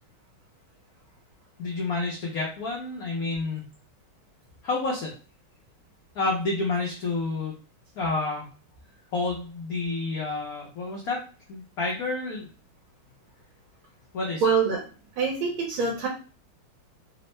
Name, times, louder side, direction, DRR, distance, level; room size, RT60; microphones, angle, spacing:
voice 1, 1.6-3.7 4.6-5.1 6.1-7.5 8.0-8.5 9.1-11.2 11.5-12.5 14.1-14.4, left 3 dB, 70° left, -2 dB, 0.8 m, -29 dB
voice 2, 14.4-14.8 15.2-16.1, right 5 dB, 75° right, -2 dB, 1.5 m, -24 dB
3.5 x 2.0 x 3.0 m, 0.37 s
omnidirectional pair, 2.3 m